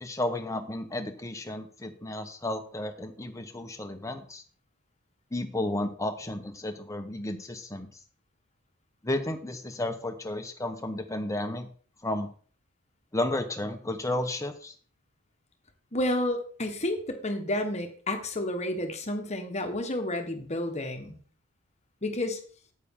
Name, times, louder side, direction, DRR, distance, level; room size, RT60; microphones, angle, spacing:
voice 1, 0.0-4.4 5.3-7.9 9.0-11.7 12.0-12.3 13.1-14.7, left 1 dB, 15° left, 6 dB, 1.0 m, -32 dB
voice 2, 15.9-21.2 22.0-22.4, left 1 dB, 30° left, 6 dB, 1.3 m, -30 dB
9.2 x 8.4 x 3.7 m, 0.44 s
head